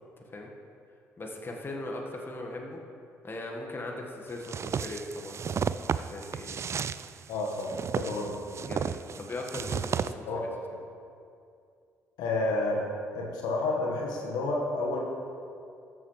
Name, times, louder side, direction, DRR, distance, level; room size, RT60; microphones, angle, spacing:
voice 1, 0.2-0.5 1.2-2.8 3.2-5.4 5.9-6.6 8.5-10.5, left 2 dB, 30° left, 0 dB, 1.5 m, -39 dB
sound 1, 4.4-10.1, right 7 dB, 40° right, 0.3 m, -33 dB
voice 2, 7.3-8.3 10.3-10.5 12.2-12.8 13.1-15.0, left 2 dB, 70° left, -1 dB, 1.4 m, -30 dB
13.5 x 7.3 x 3.2 m, 2.4 s
hypercardioid pair, 50°, 7 cm